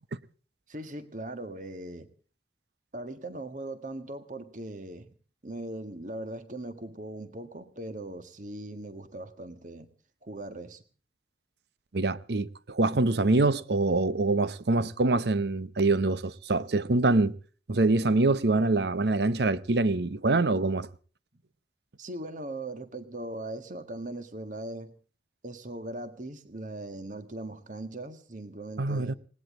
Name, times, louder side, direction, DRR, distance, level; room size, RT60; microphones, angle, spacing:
voice 1, 0.7-2.1 2.9-5.1 5.4-9.9 10.2-10.8 22.0-24.9 25.4-29.1, right 1 dB, 45° right, 1.7 m, -39 dB
voice 2, 11.9-17.4 17.7-20.9 28.8-29.1, right 2 dB, 70° right, 0.8 m, -25 dB
20.0 x 18.5 x 3.8 m
head